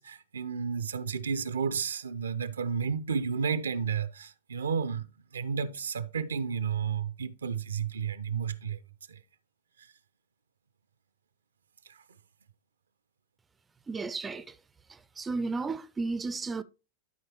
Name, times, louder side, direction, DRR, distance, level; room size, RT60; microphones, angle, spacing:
voice 1, 0.0-8.8 9.1-9.2 9.8-9.9 11.9-12.0, right 6 dB, 70° right, 0.5 m, -32 dB
voice 2, 13.9-14.5 14.9-16.6, right 3 dB, 15° right, 0.4 m, -33 dB
12.0 x 4.6 x 3.0 m
figure-of-eight pair, 90°, 0 cm